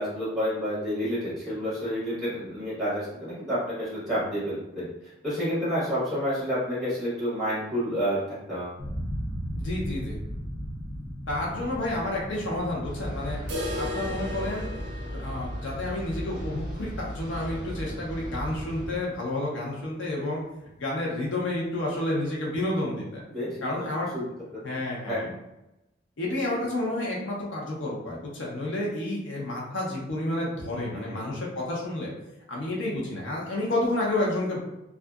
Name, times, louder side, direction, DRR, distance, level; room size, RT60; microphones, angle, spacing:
voice 1, 0.0-4.9 5.2-8.8 23.3-24.6 25.1-25.3 26.5-26.6 30.9-31.1, equal, ahead, -9 dB, 1.2 m, -30 dB
sound 1, 8.8-17.6, equal, 20° left, 0.6 m, -37 dB
voice 2, 9.5-10.2 11.3-13.4 13.7-14.7 15.2-20.4 20.8-23.2 23.6-24.1 24.6-25.3 26.2-32.1 32.5-34.6, left 1 dB, 75° left, -4 dB, 0.7 m, -30 dB
sound 2, 12.8-19.0, equal, 20° right, 0.8 m, -36 dB
sound 3, 13.5-19.3 19.6-19.7 20.1-20.2 20.7-20.8 21.6-21.7, left 1 dB, 60° right, 0.5 m, -39 dB
2.7 x 2.3 x 2.3 m, 0.92 s
head